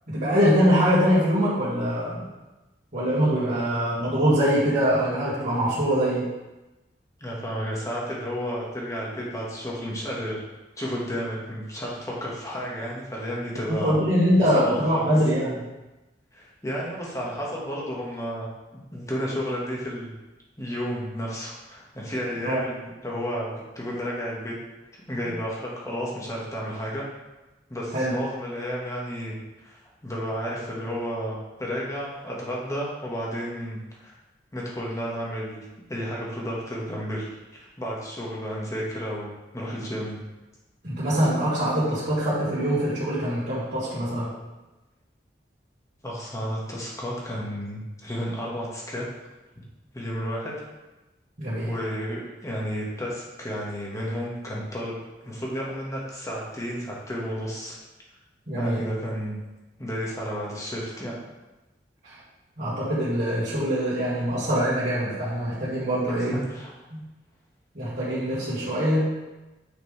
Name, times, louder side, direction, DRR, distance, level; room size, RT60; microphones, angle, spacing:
voice 1, 0.1-2.3 2.9-6.3 13.8-15.6 22.4-22.6 27.9-28.1 40.8-44.3 51.4-51.8 58.5-58.8 62.0-62.1 62.6-66.4 66.9-67.0 67.7-69.1, equal, 50° right, -13 dB, 2.3 m, -23 dB
voice 2, 7.2-10.4 10.8-14.0 14.5-15.1 16.3-20.1 20.6-24.5 25.1-27.0 27.7-34.1 34.5-40.2 46.0-49.1 49.9-50.5 51.6-55.0 55.2-57.8 58.6-59.4 59.8-61.2 66.1-66.7, equal, 20° left, -4 dB, 1.7 m, -32 dB
8.3 x 5.9 x 3.5 m, 1.1 s
head